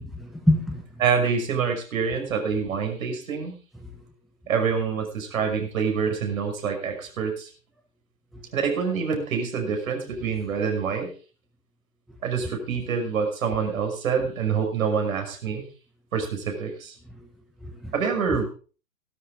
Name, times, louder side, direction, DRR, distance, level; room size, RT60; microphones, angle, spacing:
voice 1, 0.0-1.0 3.8-4.0 8.3-8.5 15.5-15.6 17.1-17.3 17.6-17.9 18.3-18.4, left 1 dB, ahead, 2 dB, 1.2 m, -27 dB
voice 2, 1.0-3.6 4.5-7.5 8.5-11.1 12.2-15.7 16.1-17.0 17.9-18.5, right 6 dB, 60° right, 4 dB, 5.8 m, -26 dB
15.5 x 12.5 x 3.9 m, 0.37 s
hypercardioid pair, 130°, 46 cm